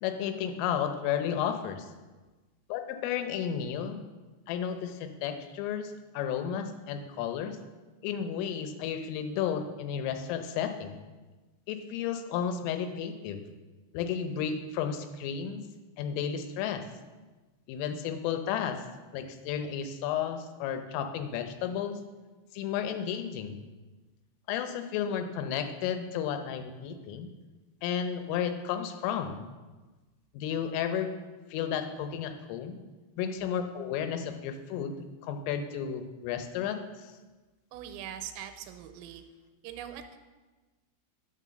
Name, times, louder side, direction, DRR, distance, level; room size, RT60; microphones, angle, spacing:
voice 1, 0.0-1.9 2.7-4.0 4.5-7.6 8.0-11.0 11.7-13.4 13.9-15.6 16.0-16.8 17.7-18.8 19.1-22.0 22.5-23.6 24.5-27.3 27.8-29.4 30.3-31.1 31.5-32.8 33.2-37.1, left 8 dB, 80° left, 7 dB, 3.3 m, -33 dB
voice 2, 37.7-39.2 39.6-40.2, right 10 dB, 90° right, 7 dB, 3.3 m, -42 dB
11.0 x 6.3 x 6.3 m, 1.2 s
omnidirectional pair, 5.8 m